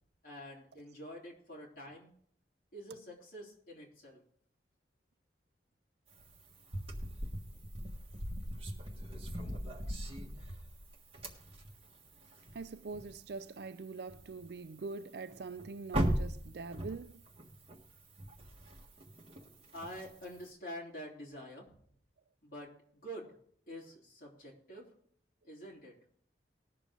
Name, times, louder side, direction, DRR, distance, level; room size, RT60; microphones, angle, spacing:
voice 1, 0.2-2.1 2.7-4.2 19.7-21.7 22.4-23.3 23.7-24.9 25.4-25.9, equal, 50° left, 3.6 m, -47 dB
sound 1, 6.1-13.3 13.6-13.7 14.1-14.6 14.9-15.0 15.3-20.5, right 1 dB, 30° right, 1.5 m, -39 dB
voice 2, 12.5-17.2, right 4 dB, 65° right, 0.5 m, -43 dB
19.5 x 6.6 x 3.8 m
head